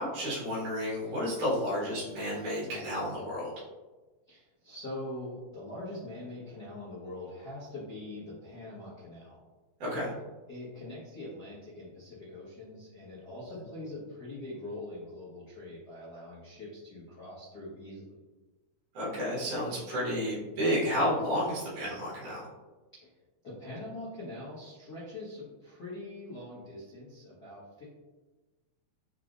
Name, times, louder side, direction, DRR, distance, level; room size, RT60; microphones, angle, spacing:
voice 1, 0.0-3.6 9.8-10.1 18.9-22.5, equal, 75° right, -6 dB, 3.0 m, -31 dB
voice 2, 4.3-9.4 10.5-18.2 23.0-23.1 23.4-27.9, left 1 dB, 60° left, -11 dB, 1.0 m, -43 dB
6.7 x 2.4 x 2.5 m, 1.2 s
omnidirectional pair, 3.7 m